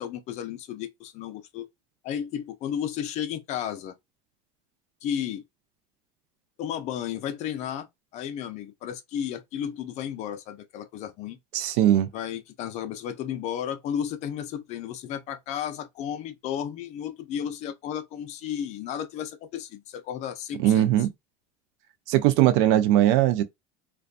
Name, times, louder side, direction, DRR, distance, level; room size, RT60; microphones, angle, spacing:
voice 1, 0.0-1.7 2.0-3.9 5.0-5.4 6.6-7.9 8.1-11.4 12.1-20.9, left 9 dB, 45° left, 0.5 m, -33 dB
voice 2, 11.5-12.1 20.6-21.1 22.1-23.4, right 13 dB, 75° right, 0.4 m, -20 dB
2.5 x 2.3 x 2.4 m
supercardioid pair, 140°, 16 cm